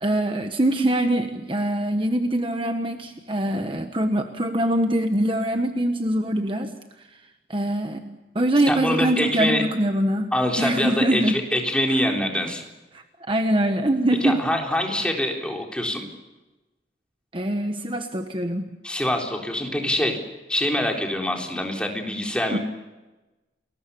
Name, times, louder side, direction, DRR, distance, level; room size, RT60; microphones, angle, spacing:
voice 1, 0.0-6.7 7.5-10.3 10.6-11.4 11.9-12.0 12.9-14.4 17.3-18.6 22.5-22.6, right 1 dB, 30° right, 6 dB, 1.3 m, -23 dB
voice 2, 8.7-9.7 10.3-12.6 14.2-16.0 18.8-20.2 20.5-22.6, left 1 dB, 5° left, 1 dB, 3.8 m, -24 dB
30.0 x 21.5 x 7.0 m, 1.1 s
head